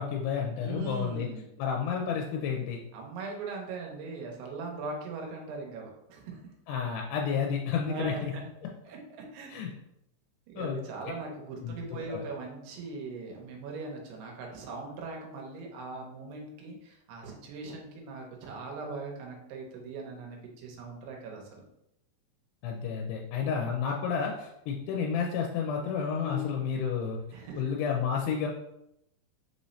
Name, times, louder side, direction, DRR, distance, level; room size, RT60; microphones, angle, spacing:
voice 1, 0.0-1.3 1.6-2.8 6.7-8.3 9.5-9.7 10.6-10.8 11.6-12.2 22.6-27.2 27.6-28.5, left 6 dB, 85° left, 1 dB, 2.6 m, -31 dB
voice 2, 0.6-1.5 2.9-6.5 7.9-8.4 8.9-9.5 10.5-21.6 26.2-26.5 27.3-27.6, right 3 dB, 90° right, 0 dB, 2.8 m, -40 dB
6.1 x 3.1 x 2.7 m, 0.82 s
omnidirectional pair, 4.7 m